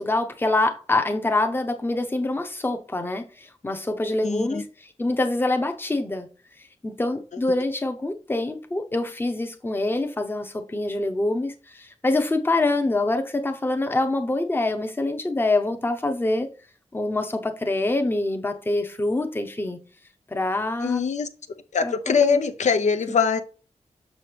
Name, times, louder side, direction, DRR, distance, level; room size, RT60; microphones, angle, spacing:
voice 1, 0.0-4.7 5.0-6.3 6.8-16.5 16.9-19.8 20.3-21.0 21.8-22.5, left 2 dB, 15° left, 0.8 m, -25 dB
voice 2, 4.2-4.6 20.8-21.3 21.7-23.4, left 5 dB, 75° left, 0.6 m, -22 dB
6.3 x 6.2 x 3.4 m
wide cardioid pair, 135°, 12 cm